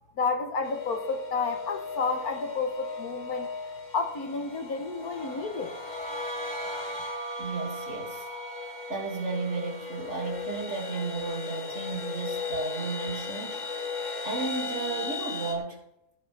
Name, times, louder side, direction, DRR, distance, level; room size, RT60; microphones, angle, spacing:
voice 1, 0.2-3.5 3.9-5.7, left 4 dB, 65° left, 1.7 m, -30 dB
sound 1, 0.6-15.5, left 3 dB, 30° left, 1.8 m, -36 dB
voice 2, 7.4-8.2 8.9-13.6 14.2-15.8, right 3 dB, 45° right, 2.8 m, -33 dB
16.5 x 8.7 x 3.4 m
omnidirectional pair, 1.7 m